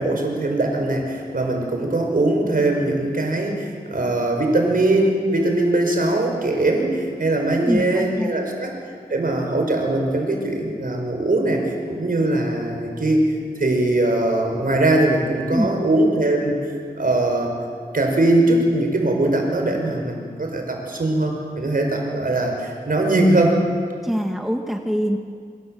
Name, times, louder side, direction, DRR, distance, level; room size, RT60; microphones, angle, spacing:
voice 1, 0.0-8.7 9.1-17.5 17.9-23.6, right 2 dB, 65° right, 2 dB, 5.8 m, -21 dB
voice 2, 7.5-8.3 15.5-15.7 24.0-25.2, equal, ahead, 3 dB, 1.9 m, -24 dB
27.0 x 24.5 x 8.0 m, 2.1 s
wide cardioid pair, 85°, 16 cm